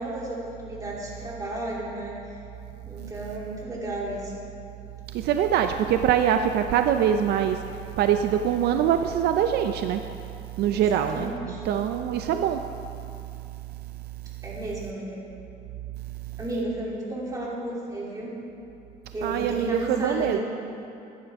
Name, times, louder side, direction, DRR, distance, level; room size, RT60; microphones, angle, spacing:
voice 1, 0.0-2.2 2.8-4.3 10.7-11.6 14.4-15.2 16.4-18.3 19.1-20.4, right 1 dB, 20° right, -5 dB, 3.0 m, -33 dB
voice 2, 5.1-7.6 8.0-10.0 10.6-11.3 11.6-12.6 19.2-20.4, right 9 dB, 75° right, 7 dB, 0.5 m, -23 dB
14.5 x 10.0 x 3.6 m, 2.8 s
cardioid pair, 110°, 17 cm